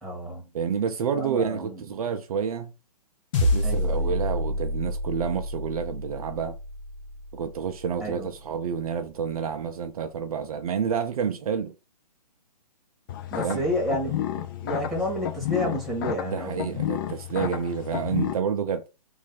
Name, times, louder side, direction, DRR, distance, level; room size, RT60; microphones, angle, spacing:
voice 1, 0.0-0.5 1.2-1.8 3.6-4.2 8.0-8.3 13.3-16.7, equal, ahead, 1.7 m, -30 dB
voice 2, 0.5-2.7 3.4-6.6 7.3-11.7 13.4-13.6 16.2-18.8, right 7 dB, 60° right, 0.5 m, -29 dB
sound 1, 3.3-7.9, left 1 dB, 50° left, 1.2 m, -28 dB
sound 2, 13.1-18.3, left 11 dB, 30° left, 0.4 m, -31 dB
3.1 x 2.6 x 4.0 m
hypercardioid pair, 140°, 21 cm